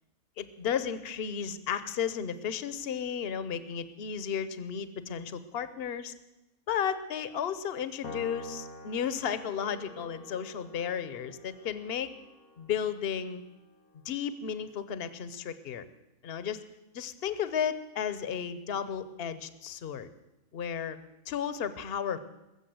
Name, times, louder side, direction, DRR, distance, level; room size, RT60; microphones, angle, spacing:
voice 1, 0.4-6.1 6.7-12.1 12.6-13.4 14.0-15.9 16.2-16.6 16.9-20.1 20.5-21.0 21.3-22.2, left 8 dB, 50° left, 14 dB, 1.0 m, -33 dB
Piano, 8.0-14.6, left 2 dB, 85° left, 1.8 m, -48 dB
20.5 x 7.2 x 7.9 m, 0.97 s
omnidirectional pair, 1.5 m